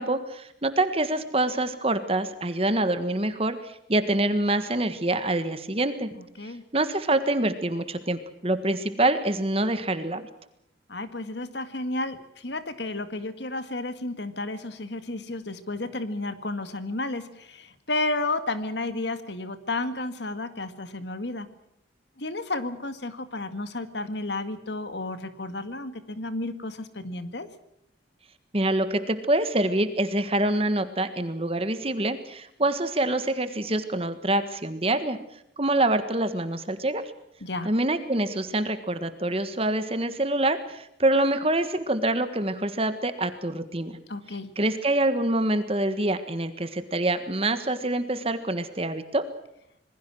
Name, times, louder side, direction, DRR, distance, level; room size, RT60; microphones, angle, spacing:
voice 1, 0.0-6.1 6.4-10.2 28.5-35.2 35.6-37.1 37.6-44.0 44.6-49.2, right 1 dB, 30° right, 10 dB, 1.5 m, -26 dB
voice 2, 10.9-21.5 22.2-27.5 37.4-37.7 44.1-44.5, left 2 dB, 65° left, 11 dB, 2.0 m, -32 dB
27.0 x 21.0 x 6.2 m, 0.75 s
head